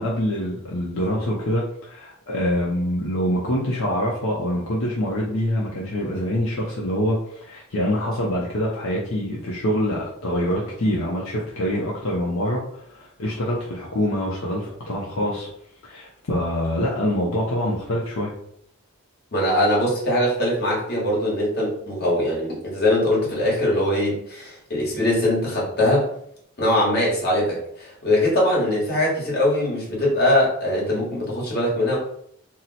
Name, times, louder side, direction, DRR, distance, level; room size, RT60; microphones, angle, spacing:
voice 1, 0.0-15.5 15.8-18.3, equal, 75° left, -4 dB, 0.6 m, -25 dB
voice 2, 19.3-26.1 26.6-32.0, left 1 dB, 50° left, -4 dB, 1.3 m, -22 dB
2.8 x 2.0 x 4.0 m, 0.69 s
head